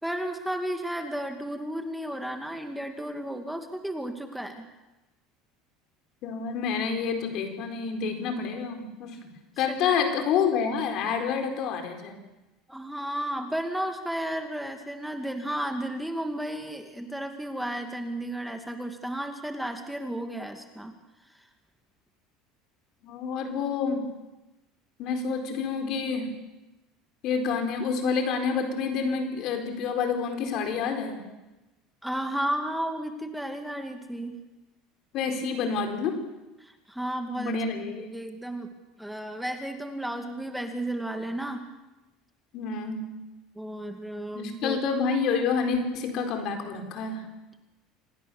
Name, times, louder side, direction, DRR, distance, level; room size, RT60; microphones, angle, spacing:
voice 1, 0.0-4.7 9.6-10.0 12.7-20.9 21.3-21.4 32.0-34.4 36.6-37.6 38.0-38.7 39.0-41.7 43.6-44.8, right 1 dB, ahead, 5 dB, 2.3 m, -33 dB
voice 2, 6.2-9.1 9.6-12.2 23.0-24.1 25.0-26.3 27.2-31.2 35.1-36.2 37.3-38.1 42.5-43.1 44.3-47.2, left 5 dB, 60° left, 6 dB, 4.6 m, -28 dB
26.5 x 18.5 x 7.2 m, 1.0 s
supercardioid pair, 105°, 0 cm